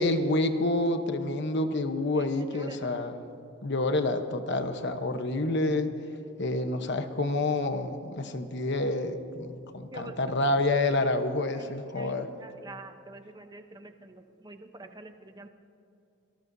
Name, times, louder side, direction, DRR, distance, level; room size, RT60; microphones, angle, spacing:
voice 1, 0.0-3.1 3.6-5.9 6.4-12.3, left 2 dB, 55° left, 8 dB, 1.0 m, -28 dB
voice 2, 2.1-2.9 9.9-10.1 11.6-15.5, right 2 dB, 20° right, 6 dB, 0.8 m, -46 dB
26.5 x 19.0 x 2.7 m, 2.7 s
head